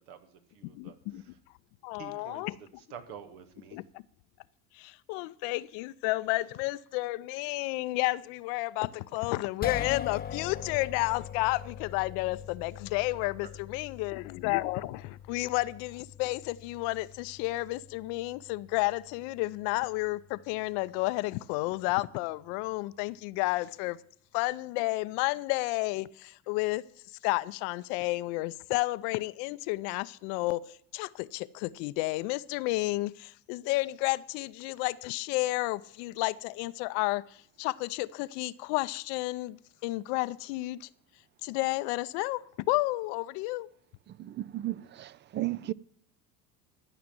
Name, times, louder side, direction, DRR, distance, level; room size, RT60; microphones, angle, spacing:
voice 1, 0.1-1.4 2.0-2.5 2.9-3.8 12.7-12.8 13.1-13.3, right 7 dB, 75° right, 1.7 m, -48 dB
voice 2, 0.7-1.2 1.8-2.6 3.7-3.8 4.7-24.0 24.3-26.8 27.2-40.9 41.4-43.7, left 20 dB, 60° left, 0.7 m, -31 dB
sound 1, 9.6-21.9, left 9 dB, 20° left, 0.6 m, -43 dB
voice 3, 44.1-45.7, right 15 dB, 25° right, 0.4 m, -35 dB
13.0 x 5.9 x 7.6 m
hypercardioid pair, 75°, 43 cm